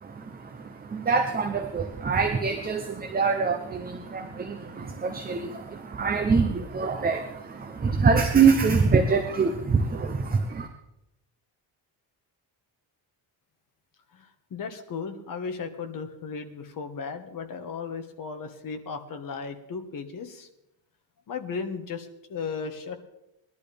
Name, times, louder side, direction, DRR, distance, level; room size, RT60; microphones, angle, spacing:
voice 1, 0.0-10.7, right 5 dB, 20° right, 6 dB, 0.7 m, -25 dB
voice 2, 14.1-20.5 21.3-23.0, left 5 dB, 45° left, 6 dB, 1.5 m, -36 dB
20.0 x 11.5 x 3.5 m, 0.88 s
cardioid pair, 165°, 47 cm